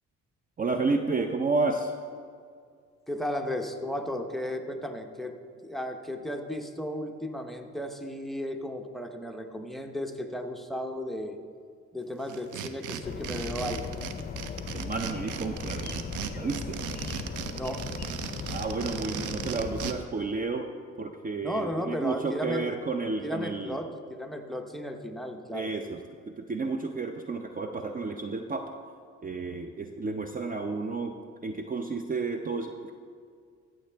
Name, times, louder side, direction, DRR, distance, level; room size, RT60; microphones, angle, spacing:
voice 1, 0.6-1.9 14.7-15.9 16.3-16.8 18.5-20.7 21.0-23.8 25.5-26.0 26.4-28.8 29.2-31.1 31.4-32.9, right 3 dB, 30° right, 6 dB, 0.5 m, -31 dB
voice 2, 3.1-5.3 5.6-11.4 11.9-13.9 17.5-17.8 21.4-22.8 23.2-25.7, equal, ahead, 5 dB, 0.8 m, -34 dB
sound 1, 12.3-19.9, right 9 dB, 85° right, 0.6 m, -37 dB
sound 2, 13.0-20.0, left 6 dB, 30° left, 0.6 m, -38 dB
13.5 x 7.6 x 3.4 m, 2.1 s
cardioid pair, 90°, 30 cm